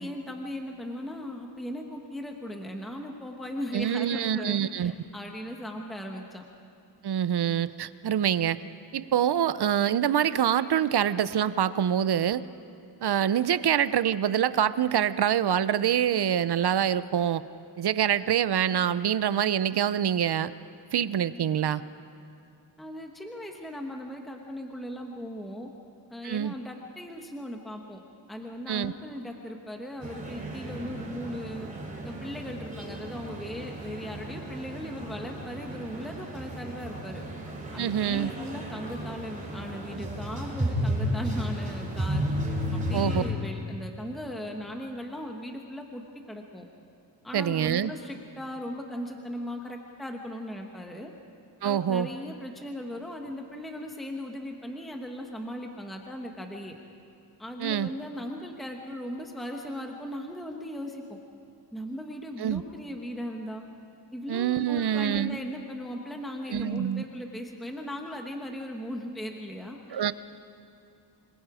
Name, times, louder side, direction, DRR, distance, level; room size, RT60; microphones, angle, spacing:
voice 1, 0.0-6.4 22.8-25.7 26.1-28.0 28.3-31.7 32.0-37.2 37.7-42.3 42.7-46.7 47.2-51.1 51.6-56.8 57.4-61.2 61.7-63.6 64.1-70.1, equal, ahead, 2 dB, 1.1 m, -38 dB
voice 2, 3.7-4.9 7.0-8.6 8.9-12.4 13.0-17.4 17.8-20.5 20.9-21.8 26.2-26.5 28.7-28.9 37.8-38.3 42.9-43.2 47.3-47.9 51.6-52.1 57.6-57.9 62.4-62.6 64.3-65.4 66.5-67.0 69.9-70.1, right 9 dB, 65° right, 15 dB, 0.6 m, -25 dB
sound 1, 30.0-43.3, equal, 20° right, 3.1 m, -33 dB
26.5 x 21.5 x 5.0 m, 2.6 s
wide cardioid pair, 170°, 43 cm